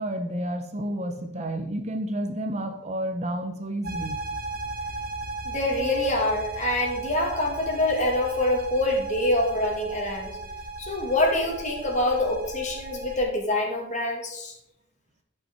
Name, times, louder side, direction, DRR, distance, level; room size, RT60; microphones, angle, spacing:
voice 1, 0.0-4.2, right 1 dB, 40° right, 0.8 m, -30 dB
sound 1, 3.8-13.2, right 2 dB, 55° right, 1.1 m, -36 dB
voice 2, 5.4-10.4 10.8-14.5, left 1 dB, 40° left, 2.0 m, -25 dB
11.0 x 5.8 x 4.5 m
head